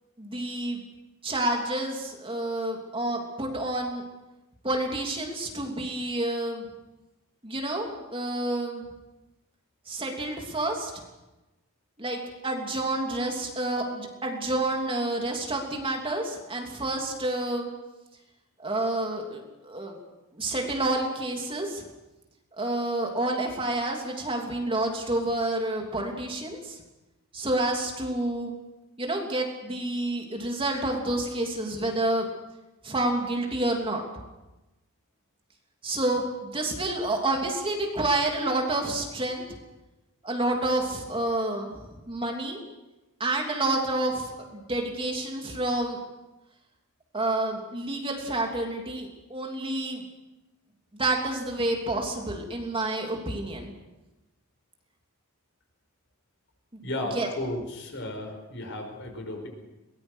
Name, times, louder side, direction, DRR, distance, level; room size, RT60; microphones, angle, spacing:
voice 1, 0.2-0.8 1.2-4.0 4.6-6.6 7.4-8.8 9.9-10.9 12.0-17.7 18.6-19.9 20.3-21.8 22.6-26.8 27.3-28.5 29.0-32.3 32.8-34.0 35.8-39.4 40.2-41.8 42.1-42.6 43.2-46.0 47.1-50.0 50.9-53.7 57.1-57.3, right 2 dB, 25° right, 1 dB, 3.0 m, -29 dB
voice 2, 56.8-59.5, left 1 dB, 60° left, 4 dB, 5.5 m, -34 dB
22.5 x 19.5 x 6.4 m, 1.0 s
head